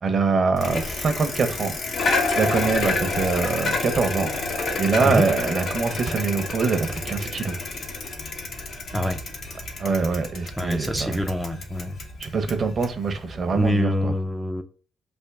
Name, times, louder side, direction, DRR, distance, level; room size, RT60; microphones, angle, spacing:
voice 1, 0.0-1.8 2.3-4.3 4.8-7.6 9.8-11.2 12.2-14.1, right 4 dB, 45° right, 0.7 m, -24 dB
Bicycle, 0.6-13.7, left 3 dB, 60° left, 0.8 m, -29 dB
voice 2, 10.6-12.0 13.5-14.6, equal, ahead, 0.4 m, -25 dB
3.4 x 2.5 x 3.5 m
cardioid pair, 90°, 0 cm